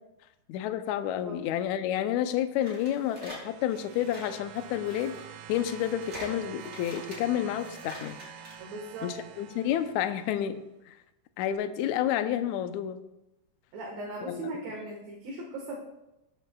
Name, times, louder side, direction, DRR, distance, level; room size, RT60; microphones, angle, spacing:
voice 1, 0.5-5.2 5.5-8.2 9.0-11.0 11.4-13.0 14.3-14.5, left 11 dB, 85° left, 9 dB, 1.7 m, -30 dB
sound 1, 2.6-8.6, right 1 dB, 25° right, 3.7 m, -46 dB
sound 2, 2.7-10.5 11.5-11.6, right 10 dB, 75° right, 2.0 m, -48 dB
voice 2, 8.6-9.1 13.7-15.8, right 2 dB, 60° right, -1 dB, 2.6 m, -38 dB
19.0 x 9.2 x 2.3 m, 0.91 s
omnidirectional pair, 4.1 m